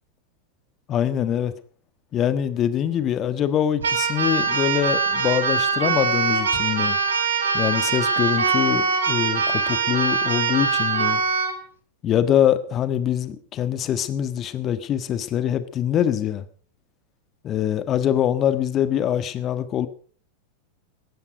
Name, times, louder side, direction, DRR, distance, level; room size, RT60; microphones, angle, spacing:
voice 1, 0.9-1.5 2.1-7.0 7.5-11.2 12.0-16.4 17.4-19.9, left 10 dB, 30° left, 13 dB, 1.5 m, -24 dB
Keyboard (musical), 3.8-11.6, right 5 dB, 70° right, 3.1 m, -22 dB
18.0 x 13.5 x 5.1 m, 0.43 s
figure-of-eight pair, 90°, 0 cm